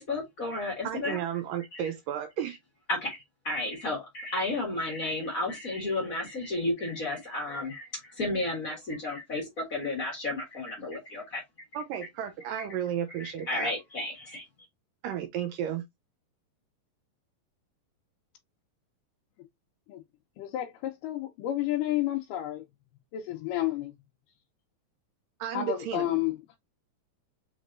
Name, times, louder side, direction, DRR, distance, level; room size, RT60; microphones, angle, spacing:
voice 1, 0.0-1.2 1.7-1.8 2.9-11.4 12.6-12.7 13.1-14.5, left 2 dB, 45° left, 1.1 m, -32 dB
voice 2, 0.8-2.6 11.7-13.7 15.0-15.8 25.4-26.1, right 9 dB, 80° right, 2.2 m, -33 dB
voice 3, 20.4-22.6 23.1-23.9 25.5-26.4, left 14 dB, 75° left, 2.2 m, -30 dB
5.4 x 3.5 x 2.5 m
omnidirectional pair, 4.1 m